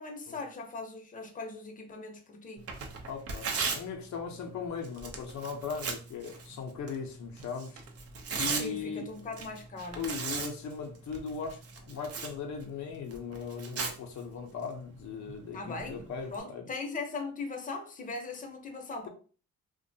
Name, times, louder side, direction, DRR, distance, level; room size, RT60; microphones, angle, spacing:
voice 1, 0.0-2.6 8.4-10.2 15.5-19.1, left 3 dB, 25° left, 0.7 m, -39 dB
Tearing, 2.6-16.4, right 5 dB, 50° right, 0.6 m, -40 dB
voice 2, 3.1-7.8 8.4-9.1 9.9-16.7, left 5 dB, 70° left, 0.6 m, -38 dB
2.5 x 2.2 x 2.6 m
cardioid pair, 90°, 30 cm